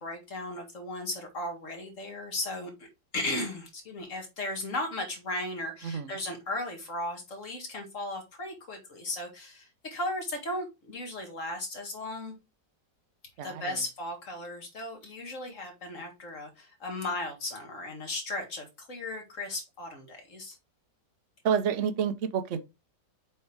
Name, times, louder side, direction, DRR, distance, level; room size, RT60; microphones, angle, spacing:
voice 1, 0.0-12.3 13.4-20.6, left 2 dB, 45° left, 2.2 m, -36 dB
voice 2, 21.4-22.6, right 7 dB, 55° right, 1.0 m, -28 dB
7.4 x 4.4 x 3.5 m
omnidirectional pair, 1.9 m